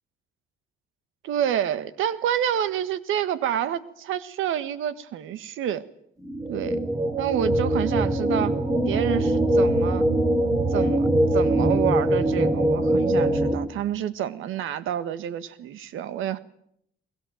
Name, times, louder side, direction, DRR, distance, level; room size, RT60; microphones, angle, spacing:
voice 1, 1.2-5.9 6.5-6.8 7.2-8.6 8.9-10.1 10.7-16.4, right 10 dB, 85° right, 14 dB, 1.6 m, -28 dB
sound 1, 6.2-13.5, right 1 dB, 15° right, 4.7 m, -22 dB
22.0 x 22.0 x 9.2 m, 0.71 s
cardioid pair, 90°, 20 cm